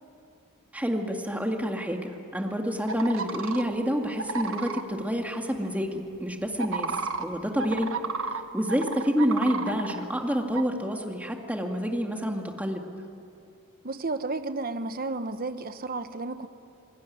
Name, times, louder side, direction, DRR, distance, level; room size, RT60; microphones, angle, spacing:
voice 1, 0.7-7.9 8.5-12.8, equal, 5° right, 2 dB, 2.2 m, -28 dB
sound 1, 2.9-3.6 4.2-4.8 6.5-8.4 8.7-10.0 10.5-10.6, right 4 dB, 65° right, 1.4 m, -32 dB
voice 2, 13.8-16.5, right 3 dB, 45° right, 10 dB, 1.1 m, -32 dB
28.0 x 20.5 x 9.6 m, 2.6 s
head